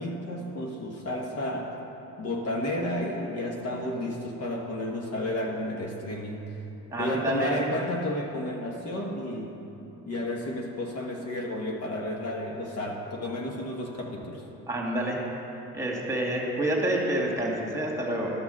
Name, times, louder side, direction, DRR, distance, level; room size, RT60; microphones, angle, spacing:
voice 1, 0.0-1.7 2.2-6.6 6.9-9.6 10.1-14.4, left 1 dB, 45° left, 0 dB, 1.3 m, -32 dB
voice 2, 6.9-7.6 14.7-15.2 15.7-18.3, right 1 dB, 10° right, -2 dB, 2.4 m, -28 dB
12.5 x 6.1 x 6.6 m, 2.9 s
supercardioid pair, 90°, 35 cm